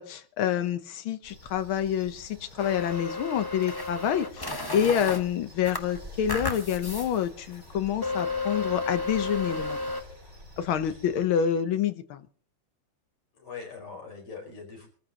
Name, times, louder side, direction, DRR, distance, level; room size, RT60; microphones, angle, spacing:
voice 1, 0.0-9.8 10.6-12.2, left 9 dB, 70° left, 11 dB, 1.7 m, -27 dB
sound 1, 1.2-11.3, equal, 25° right, 5.9 m, -48 dB
sound 2, 2.6-5.2 5.6-7.1 7.5-7.6 8.0-10.0, left 3 dB, 20° left, 0.7 m, -32 dB
voice 2, 13.3-14.9, left 5 dB, 90° left, 1 dB, 5.5 m, -42 dB
26.0 x 14.0 x 2.9 m, 0.42 s
omnidirectional pair, 2.4 m